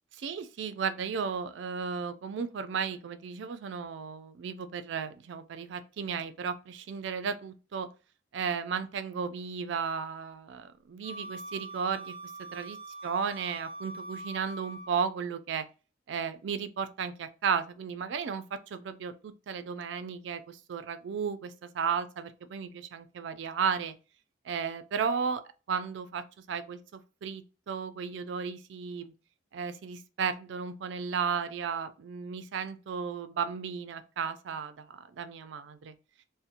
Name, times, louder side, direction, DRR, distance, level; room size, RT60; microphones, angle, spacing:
voice 1, 0.1-7.9 8.3-12.8 13.0-15.7 16.1-23.9 24.4-25.4 25.7-29.1 29.5-35.9, right 6 dB, 70° right, 0.3 m, -34 dB
Wind instrument woodwind instrument, 11.0-15.1, right 1 dB, 50° left, 0.6 m, -43 dB
2.7 x 2.1 x 2.5 m
head